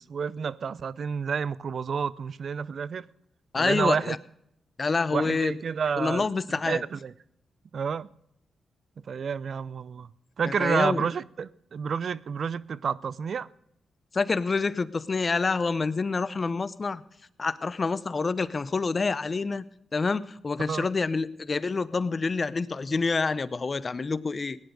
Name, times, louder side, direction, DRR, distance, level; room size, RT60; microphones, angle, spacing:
voice 1, 0.0-3.0 3.6-4.2 5.1-6.3 6.6-7.1 7.7-8.1 9.1-10.1 10.4-13.5 20.6-20.9, right 6 dB, 65° right, 0.5 m, -30 dB
voice 2, 3.5-4.2 4.8-5.5 6.0-6.8 10.4-11.1 14.1-17.0 17.4-19.7 19.9-24.6, left 4 dB, 40° left, 0.8 m, -27 dB
18.0 x 10.5 x 5.2 m
supercardioid pair, 55°, 0 cm